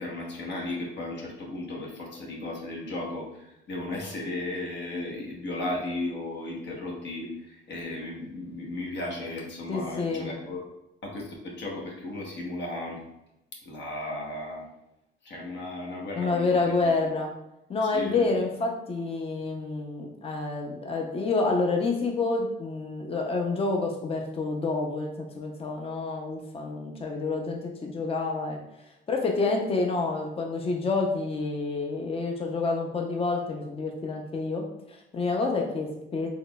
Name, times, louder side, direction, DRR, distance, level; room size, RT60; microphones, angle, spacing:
voice 1, 0.0-10.6 11.0-13.0 13.6-14.7 15.2-16.9 17.9-18.3, left 2 dB, 65° left, -2 dB, 0.9 m, -35 dB
voice 2, 9.7-10.3 16.2-17.3 17.7-28.6 29.1-36.3, left 3 dB, 30° left, 1 dB, 0.6 m, -28 dB
3.7 x 3.0 x 2.2 m, 0.87 s
cardioid pair, 90°, 20 cm